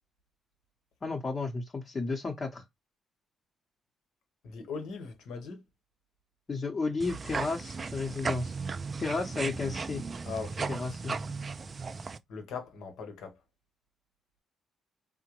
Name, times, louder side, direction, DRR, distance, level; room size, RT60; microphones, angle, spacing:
voice 1, 1.0-2.6 6.5-8.6 9.0-10.0 10.7-11.1, left 3 dB, 35° left, 0.7 m, -33 dB
voice 2, 4.4-5.6 10.3-10.8 12.3-13.4, left 5 dB, 80° left, 0.9 m, -40 dB
sound 1, 7.0-12.2, right 4 dB, 35° right, 0.3 m, -36 dB
3.7 x 2.1 x 2.9 m
cardioid pair, 90°, 0 cm